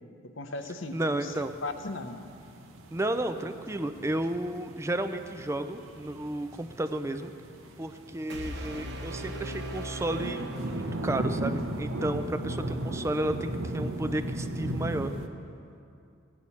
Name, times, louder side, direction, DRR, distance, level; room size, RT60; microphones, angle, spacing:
voice 1, 0.2-2.2, left 2 dB, 65° left, 8 dB, 0.7 m, -37 dB
voice 2, 0.9-1.5 2.9-7.3 7.8-15.1, right 1 dB, 15° right, 8 dB, 0.4 m, -32 dB
sound 1, 1.0-15.3, right 1 dB, 80° right, 0.9 m, -37 dB
sound 2, 8.3-11.4, equal, 55° right, 1.1 m, -38 dB
17.0 x 9.9 x 4.2 m, 2.6 s
head